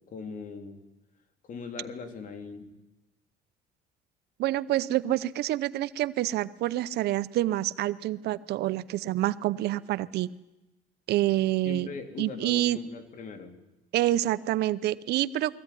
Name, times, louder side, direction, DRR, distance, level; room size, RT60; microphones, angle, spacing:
voice 1, 0.1-0.8 1.4-2.7 11.6-13.6, left 4 dB, 50° left, 6 dB, 3.2 m, -40 dB
voice 2, 4.4-10.3 11.1-11.9 12.2-12.8 13.9-15.6, right 14 dB, 75° right, 17 dB, 0.8 m, -27 dB
21.0 x 15.0 x 10.0 m, 1.0 s
cardioid pair, 110°, 17 cm